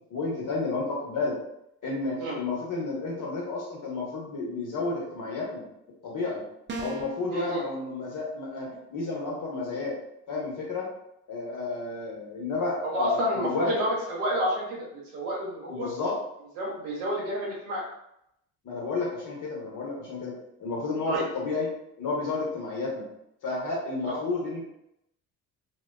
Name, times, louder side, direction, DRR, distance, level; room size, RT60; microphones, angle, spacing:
voice 1, 0.1-1.4 1.8-5.7 6.0-6.4 6.8-9.9 10.3-10.9 11.3-13.7 15.7-16.2 18.6-20.3 20.6-21.7 22.0-23.1 23.4-24.6, left 3 dB, 45° left, -3 dB, 1.1 m, -31 dB
sound 1, 6.7-7.2, right 2 dB, 25° right, 0.4 m, -35 dB
voice 2, 7.3-7.6 12.8-15.9 16.6-17.8 21.1-21.3 24.0-24.2, equal, 80° right, -3 dB, 0.9 m, -29 dB
2.4 x 2.1 x 2.3 m, 0.79 s
hypercardioid pair, 50°, 44 cm